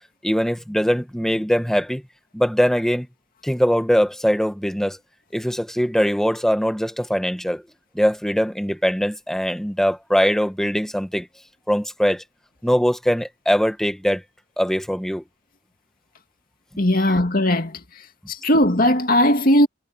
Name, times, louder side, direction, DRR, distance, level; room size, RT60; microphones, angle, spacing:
voice 1, 0.2-2.0 2.3-3.1 3.4-5.0 5.3-7.6 7.9-11.3 11.7-12.2 12.6-14.2 14.6-15.2, equal, ahead, 1.3 m, -21 dB
voice 2, 16.8-17.8 18.3-19.7, left 1 dB, 50° left, 2.5 m, -18 dB
head